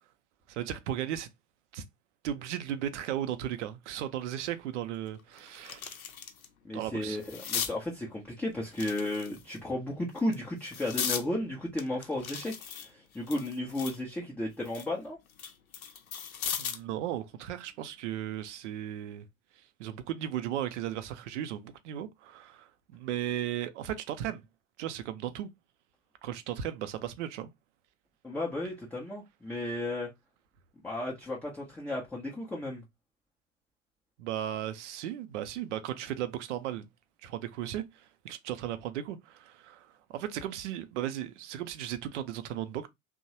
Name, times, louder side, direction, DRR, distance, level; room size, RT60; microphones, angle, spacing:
voice 1, 0.5-1.3 1.7-1.8 2.2-5.8 6.7-7.2 16.6-19.2 19.8-24.4 24.8-25.5 26.2-27.5 34.2-36.8 37.2-42.9, right 11 dB, 55° right, 0.6 m, -36 dB
sound 1, 4.5-4.6 5.0-6.5 6.8-7.8 8.7-9.6 10.2-11.3 11.8-14.0 14.4-16.9 18.3-18.5, left 7 dB, 80° left, 0.6 m, -37 dB
voice 2, 6.6-12.5 12.8-15.2 28.2-30.1 30.8-32.8, left 1 dB, 5° left, 0.4 m, -34 dB
2.9 x 2.0 x 2.7 m
figure-of-eight pair, 75°, 42 cm